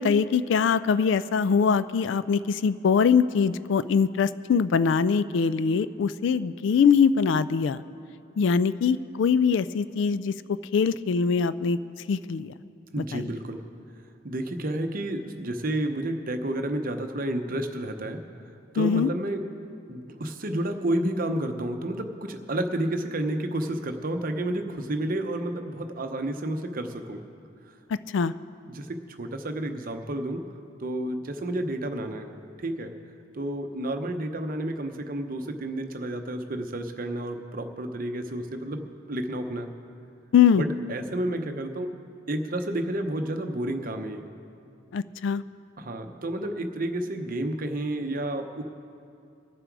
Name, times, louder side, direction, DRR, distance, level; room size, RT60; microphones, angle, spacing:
voice 1, 0.0-7.8 8.4-10.3 10.7-11.8 12.1-12.5 13.1-13.3 18.8-19.1 27.9-28.3 40.3-40.6 44.9-45.4, left 6 dB, 65° left, 16 dB, 0.3 m, -22 dB
voice 2, 12.9-13.6 14.2-18.2 18.7-19.4 19.9-27.2 28.7-30.4 30.8-32.3 32.6-32.9 33.3-39.7 40.5-41.9 42.3-44.3 45.8-48.6, right 1 dB, 45° right, 6 dB, 0.8 m, -30 dB
22.5 x 7.6 x 4.7 m, 2.5 s
head